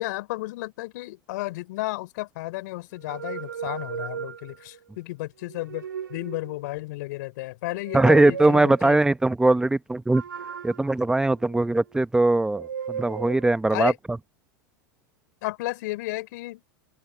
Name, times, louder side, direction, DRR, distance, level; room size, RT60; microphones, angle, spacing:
voice 1, 0.0-9.0 13.7-14.0 15.4-16.6, left 20 dB, 65° left, 4.0 m, -33 dB
sound 1, 3.0-4.8 5.4-6.7 7.7-9.0 10.1-12.0 12.5-13.5, right 7 dB, 90° right, 3.5 m, -37 dB
voice 2, 7.9-10.2 10.6-13.9, right 2 dB, 5° right, 1.0 m, -20 dB
open air
hypercardioid pair, 105°, 11 cm